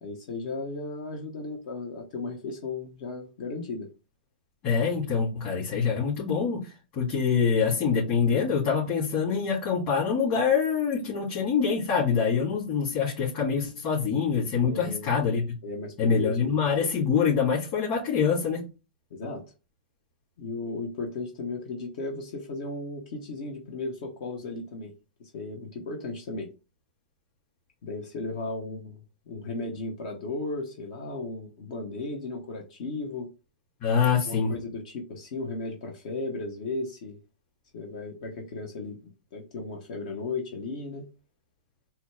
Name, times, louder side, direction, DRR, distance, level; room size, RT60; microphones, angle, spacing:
voice 1, 0.0-3.9 14.6-15.1 15.6-16.6 19.1-19.4 20.4-24.9 25.2-26.5 27.8-29.0 29.3-33.3 34.1-37.2 37.7-41.1, left 3 dB, 55° left, 1 dB, 1.0 m, -35 dB
voice 2, 4.6-15.6 16.0-18.7 33.8-34.5, left 6 dB, 40° left, -7 dB, 2.4 m, -25 dB
4.3 x 2.3 x 4.6 m, 0.31 s
hypercardioid pair, 120°, 5 cm